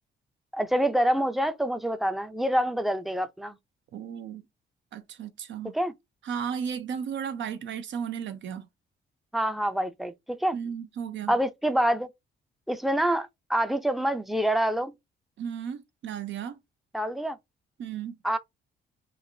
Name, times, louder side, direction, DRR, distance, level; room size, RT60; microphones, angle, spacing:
voice 1, 0.5-3.6 5.7-5.9 9.3-10.6 11.3-12.1 12.7-14.9 16.9-17.4 18.2-18.4, right 1 dB, ahead, 0.5 m, -26 dB
voice 2, 3.9-4.4 4.9-5.7 6.2-8.7 10.5-11.3 15.4-16.6 17.8-18.2, right 7 dB, 70° right, 0.7 m, -34 dB
3.2 x 2.5 x 2.7 m
cardioid pair, 90°, 20 cm